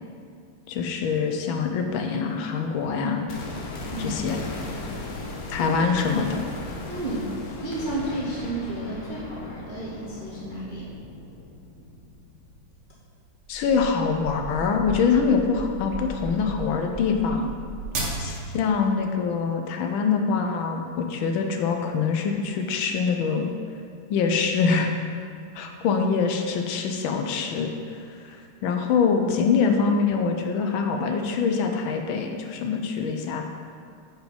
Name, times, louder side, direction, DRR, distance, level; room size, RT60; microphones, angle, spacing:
voice 1, 0.7-3.2 4.0-4.4 5.5-6.4 13.5-17.5 18.2-23.5 24.1-24.9 25.5-27.7 28.2-28.4 28.6-33.4, left 5 dB, 75° left, 4 dB, 1.4 m, -24 dB
sound 1, 3.3-13.3 13.6-13.7, left 2 dB, 55° left, 1.1 m, -37 dB
voice 2, 3.9-4.2 5.6-5.8 6.9-7.3 7.6-10.9, right 2 dB, 65° right, -6 dB, 0.4 m, -32 dB
sound 2, 13.5-18.6, right 2 dB, 45° right, 0.9 m, -35 dB
8.0 x 4.5 x 5.2 m, 2.3 s
omnidirectional pair, 2.4 m